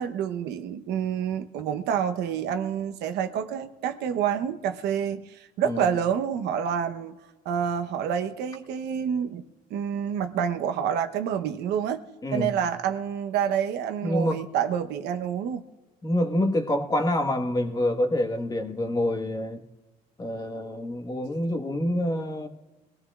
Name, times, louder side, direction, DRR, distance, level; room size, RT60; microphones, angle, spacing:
voice 1, 0.0-7.2 7.4-9.4 9.7-12.0 12.3-15.6, right 8 dB, 85° right, 1.0 m, -28 dB
voice 2, 12.2-12.6 14.0-14.4 16.0-19.6 20.2-22.5, left 1 dB, 20° left, 1.5 m, -27 dB
22.0 x 17.0 x 2.4 m
cardioid pair, 110°, 17 cm